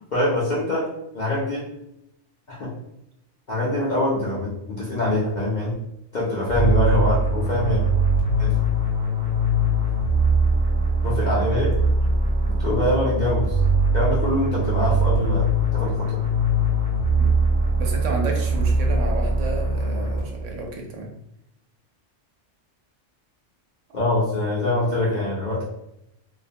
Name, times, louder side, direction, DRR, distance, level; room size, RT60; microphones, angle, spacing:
voice 1, 0.1-0.9 1.1-1.7 2.5-2.7 3.5-5.7 6.1-7.8 8.4-8.5 11.0-11.8 12.6-13.6 13.9-16.1 23.9-25.6, left 2 dB, 55° left, -6 dB, 0.5 m, -24 dB
sound 1, 6.5-20.6, right 1 dB, 40° right, 0.6 m, -21 dB
voice 2, 17.8-21.1, right 2 dB, 75° right, 1 dB, 0.9 m, -31 dB
2.4 x 2.1 x 2.6 m, 0.84 s
omnidirectional pair, 1.3 m